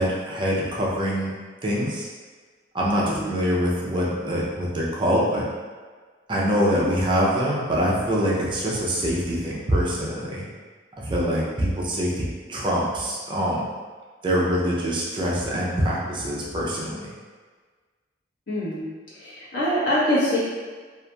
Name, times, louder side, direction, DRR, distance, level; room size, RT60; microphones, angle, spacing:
voice 1, 0.0-1.3 1.6-2.1 2.7-5.5 6.3-10.5 11.0-13.6 14.2-17.0, equal, 25° right, -5 dB, 0.4 m, -24 dB
voice 2, 18.5-18.8 19.2-20.4, left 1 dB, 80° left, -9 dB, 1.0 m, -24 dB
2.8 x 2.4 x 2.2 m, 1.5 s
head